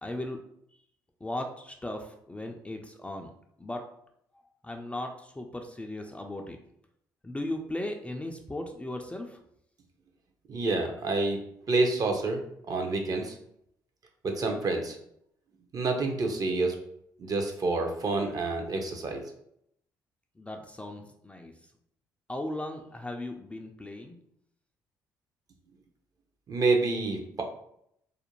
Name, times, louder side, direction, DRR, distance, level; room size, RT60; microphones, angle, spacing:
voice 1, 0.0-0.4 1.2-3.3 3.6-3.8 4.6-6.6 7.2-9.4 18.2-18.3 20.4-21.5 22.3-24.2, left 1 dB, 15° left, 3 dB, 0.4 m, -37 dB
voice 2, 10.5-11.4 11.7-12.4 12.7-13.4 14.2-15.0 15.7-16.7 17.2-19.2 26.5-27.4, right 3 dB, 45° right, 3 dB, 0.6 m, -28 dB
2.4 x 2.1 x 3.0 m, 0.73 s
hypercardioid pair, 55°, 9 cm